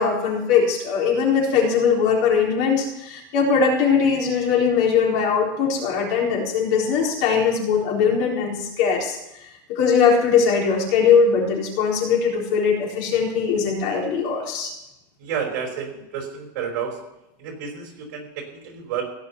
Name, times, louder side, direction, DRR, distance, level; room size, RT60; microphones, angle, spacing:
voice 1, 0.0-9.2 9.7-14.7, left 6 dB, 65° left, -1 dB, 4.0 m, -20 dB
voice 2, 15.2-17.0 17.4-19.0, right 7 dB, 60° right, 2 dB, 4.9 m, -30 dB
17.0 x 5.8 x 9.4 m, 0.87 s
supercardioid pair, 170°, 11 cm